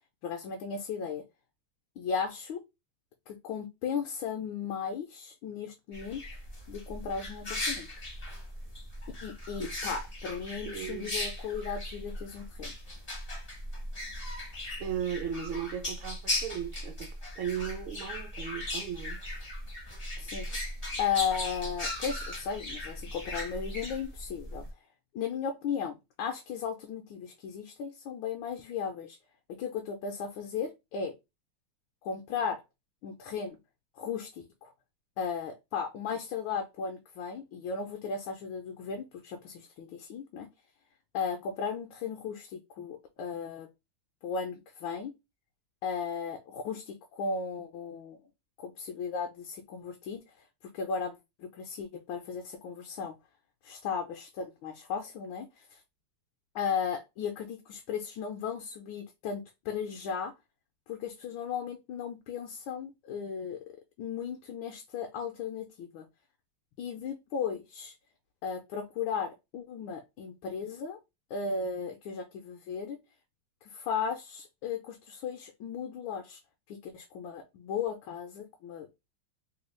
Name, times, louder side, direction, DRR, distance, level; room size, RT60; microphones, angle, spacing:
voice 1, 0.2-1.2 2.0-2.6 3.3-6.2 6.7-7.9 9.2-12.7 20.2-20.5 21.0-24.6 25.1-29.2 29.6-31.1 32.0-32.6 33.0-33.6 34.0-34.7 35.2-40.5 41.1-43.7 44.2-45.1 45.8-48.2 48.6-50.2 50.7-53.2 53.6-55.8 56.5-60.3 60.9-63.6 64.0-66.0 66.8-67.9 68.4-71.0 71.3-73.0 73.6-76.4 76.7-78.9, left 6 dB, 75° left, 1.2 m, -36 dB
sound 1, 5.9-24.7, left 1 dB, 35° left, 0.5 m, -38 dB
voice 2, 10.6-11.1 14.8-17.1 17.4-19.2, right 8 dB, 75° right, 1.3 m, -36 dB
3.5 x 2.3 x 3.1 m
omnidirectional pair, 2.4 m